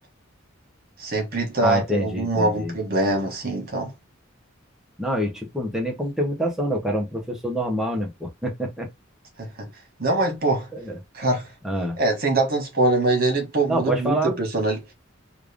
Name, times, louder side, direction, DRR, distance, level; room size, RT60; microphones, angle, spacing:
voice 1, 1.0-3.9 9.4-9.7 10.0-10.7 11.1-11.4 12.0-14.8, right 2 dB, 45° right, 1.5 m, -23 dB
voice 2, 1.6-2.7 5.0-8.9 10.7-11.0 11.6-12.0 13.7-14.4, equal, ahead, 0.9 m, -26 dB
3.3 x 2.5 x 3.5 m
head